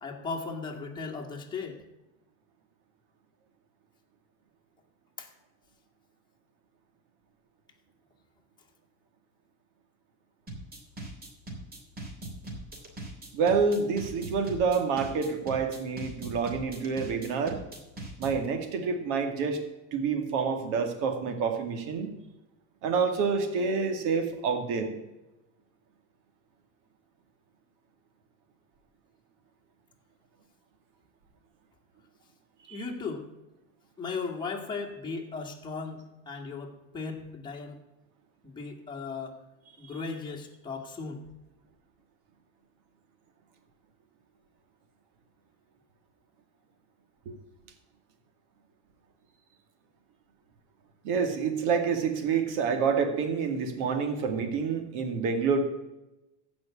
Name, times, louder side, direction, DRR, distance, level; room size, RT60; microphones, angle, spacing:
voice 1, 0.0-1.8 5.2-5.3 32.7-33.3 34.0-37.8 38.4-39.4 39.8-41.2, left 4 dB, 15° left, -1 dB, 2.2 m, -37 dB
sound 1, 10.5-18.5, right 1 dB, 25° right, 3.1 m, -40 dB
voice 2, 13.3-17.6 18.2-19.6 19.9-22.1 22.8-24.9 32.7-32.8 51.0-55.6, right 5 dB, 65° right, 6 dB, 2.3 m, -28 dB
15.0 x 5.2 x 8.5 m, 0.99 s
supercardioid pair, 125°, 34 cm